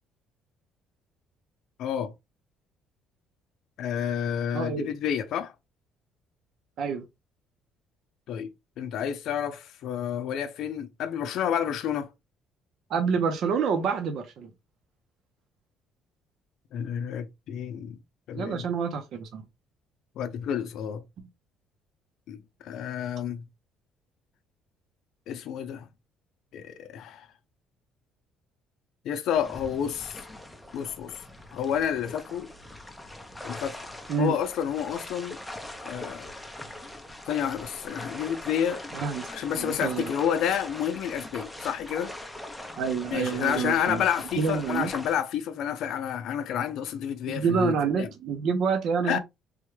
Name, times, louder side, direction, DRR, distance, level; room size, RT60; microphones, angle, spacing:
voice 1, 1.8-2.1 3.8-5.5 8.3-8.5 8.8-12.1 16.7-18.0 18.3-18.7 20.2-21.0 22.3-23.5 25.3-25.9 26.5-27.3 29.0-30.2 30.7-31.1 31.5-32.5 33.4-33.8 34.2-35.4 35.8-36.3 37.3-38.8 39.3-42.1 43.1-48.1 49.0-49.2, left 9 dB, 65° left, 0.5 m, -30 dB
voice 2, 4.5-4.9 6.8-7.0 12.9-14.5 18.3-19.4 34.1-34.4 38.9-39.3 39.5-40.1 42.8-44.0 44.4-44.9 47.3-49.2, right 6 dB, 60° right, 0.6 m, -27 dB
sound 1, 29.3-45.1, left 1 dB, 5° left, 0.5 m, -42 dB
3.5 x 2.2 x 3.1 m
cardioid pair, 135°, 0 cm